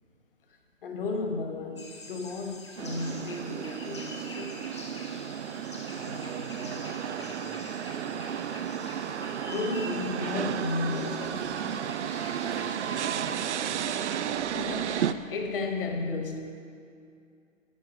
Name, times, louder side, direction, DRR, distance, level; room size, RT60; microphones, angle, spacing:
voice 1, 0.8-4.6 9.5-11.4 14.5-16.4, left 3 dB, 45° left, 1.1 m, -33 dB
sound 1, 1.8-13.4, left 2 dB, 25° left, 0.5 m, -46 dB
sound 2, 2.8-15.1, right 9 dB, 65° right, 0.5 m, -33 dB
voice 2, 6.0-8.5 12.4-13.8, right 2 dB, 80° right, 2.4 m, -47 dB
9.6 x 5.6 x 6.4 m
hypercardioid pair, 160°, 39 cm